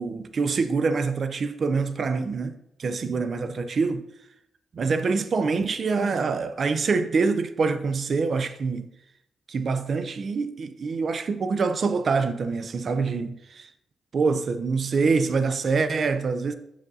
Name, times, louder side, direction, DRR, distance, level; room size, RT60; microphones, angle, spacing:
voice 1, 0.0-4.0 4.7-8.9 9.5-13.7 14.1-16.5, right 4 dB, 55° right, 0.4 m, -25 dB
7.4 x 5.2 x 2.7 m
cardioid pair, 65°, 0 cm